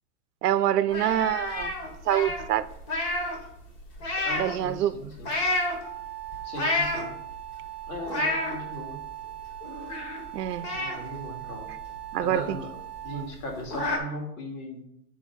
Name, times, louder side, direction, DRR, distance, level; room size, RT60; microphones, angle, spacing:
voice 1, 0.4-1.7 2.1-2.6 4.4-5.0 10.3-10.7 12.1-12.6, right 11 dB, 85° right, 14 dB, 0.7 m, -25 dB
sound 1, 0.9-3.4 3.7-4.6 5.2-5.8 6.3-7.3 7.8-8.6 9.0-9.1 9.4-10.3 10.6-12.2 12.5-12.6 13.0-13.1 13.3-14.0, left 2 dB, 30° left, 1.7 m, -29 dB
voice 2, 4.2-5.3 6.4-7.1 7.9-9.0 10.7-11.7 12.2-12.7 13.0-14.8, equal, 65° left, 1 dB, 2.6 m, -37 dB
Wind instrument woodwind instrument, 5.8-13.4, right 15 dB, 5° right, 0.3 m, -40 dB
7.8 x 5.0 x 4.7 m, 0.76 s
hypercardioid pair, 140°, 46 cm